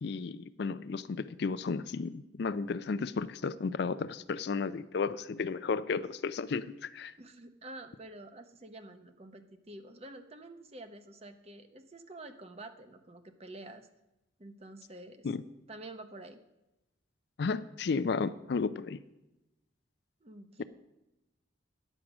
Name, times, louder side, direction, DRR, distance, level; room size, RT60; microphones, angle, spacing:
voice 1, 0.0-7.1 15.2-15.4 17.4-19.0 20.6-20.7, left 4 dB, 60° left, 15 dB, 0.4 m, -33 dB
voice 2, 7.2-13.9 14.4-15.3 15.7-16.4 20.2-20.6, right 2 dB, 35° right, 9 dB, 0.8 m, -48 dB
9.9 x 7.6 x 6.0 m, 0.96 s
head